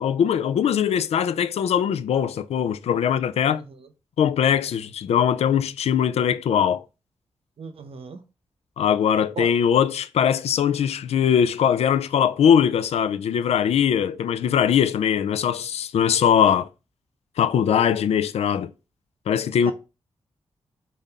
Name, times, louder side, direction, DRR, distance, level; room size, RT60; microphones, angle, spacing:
voice 1, 0.0-3.6 4.2-6.8 8.8-16.7 17.4-18.7 19.3-19.7, left 8 dB, 85° left, 0.4 m, -21 dB
voice 2, 3.5-3.9 7.6-8.2 9.4-9.6 19.6-19.7, right 5 dB, 65° right, 0.7 m, -37 dB
5.5 x 2.6 x 3.4 m
cardioid pair, 90°, 10 cm